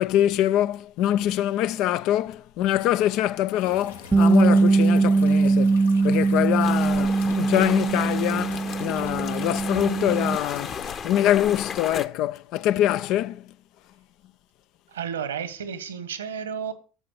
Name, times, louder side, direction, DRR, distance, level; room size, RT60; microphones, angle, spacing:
voice 1, 0.0-13.5, left 13 dB, 55° left, 0.6 m, -24 dB
sound 1, 3.6-11.0, left 5 dB, 80° left, 1.8 m, -43 dB
Bass guitar, 4.1-10.4, right 3 dB, 20° right, 0.5 m, -21 dB
sound 2, 6.6-12.1, left 7 dB, 40° left, 1.2 m, -34 dB
voice 2, 14.9-16.7, right 7 dB, 80° right, 1.5 m, -32 dB
11.5 x 7.7 x 6.6 m
figure-of-eight pair, 70°, 0 cm